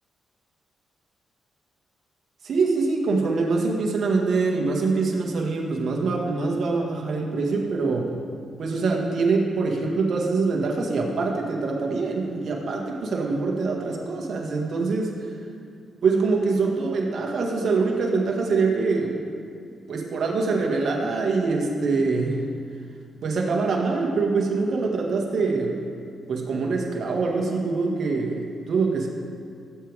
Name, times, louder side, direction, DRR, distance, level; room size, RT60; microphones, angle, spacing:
voice 1, 2.4-8.2 8.6-15.3 16.0-19.2 19.9-22.5 23.2-25.8 26.3-29.1, right 4 dB, 65° right, 0 dB, 1.9 m, -24 dB
18.0 x 8.0 x 3.6 m, 2.3 s
cardioid pair, 70°, 0 cm